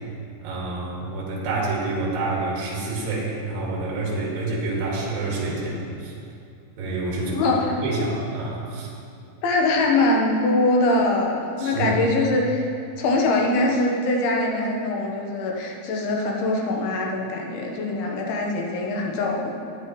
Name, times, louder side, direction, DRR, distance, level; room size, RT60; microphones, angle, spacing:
voice 1, 0.4-6.1 6.8-7.5 7.8-8.9 11.6-12.0, right 2 dB, 70° right, -4 dB, 4.0 m, -28 dB
voice 2, 7.3-7.8 9.4-12.7 13.0-19.6, left 2 dB, 70° left, -1 dB, 2.9 m, -23 dB
14.0 x 9.4 x 3.1 m, 2.6 s
omnidirectional pair, 5.2 m